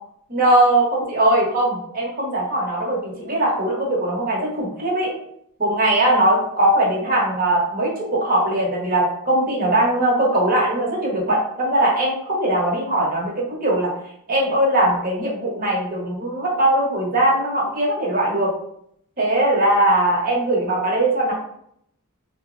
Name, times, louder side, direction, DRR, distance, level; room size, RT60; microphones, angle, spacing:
voice 1, 0.3-5.1 5.6-13.9 14.3-18.5 19.2-21.3, right 1 dB, 40° right, -3 dB, 0.9 m, -20 dB
3.9 x 2.0 x 2.5 m, 0.71 s
head